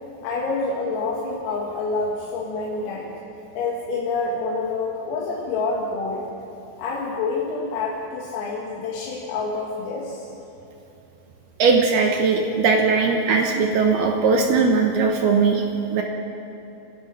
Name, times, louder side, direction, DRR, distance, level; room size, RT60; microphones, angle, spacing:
voice 1, 0.2-3.1 3.6-6.2 6.8-10.3, left 3 dB, 90° left, -4 dB, 4.6 m, -27 dB
voice 2, 11.6-15.6 15.9-16.0, right 4 dB, 70° right, 2 dB, 2.4 m, -19 dB
26.0 x 16.0 x 6.3 m, 2.9 s
omnidirectional pair, 5.9 m